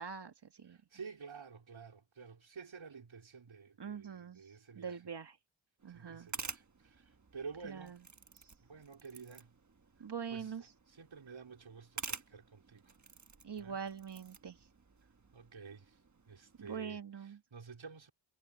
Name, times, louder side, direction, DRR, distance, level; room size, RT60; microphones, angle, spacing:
voice 1, 0.0-0.8 3.8-4.4 4.8-5.4 5.8-6.3 7.6-8.0 10.0-10.7 13.4-14.6 16.6-17.4, right 7 dB, 60° right, 1.7 m, -43 dB
voice 2, 0.7-5.0 5.9-8.0 8.6-9.5 10.3-10.5 10.9-12.9 13.6-13.8 15.3-16.0 16.3-17.0 17.5-18.1, right 5 dB, 85° right, 4.2 m, -51 dB
sound 1, 5.8-16.8, right 4 dB, 40° right, 1.2 m, -50 dB
wide cardioid pair, 85°, 46 cm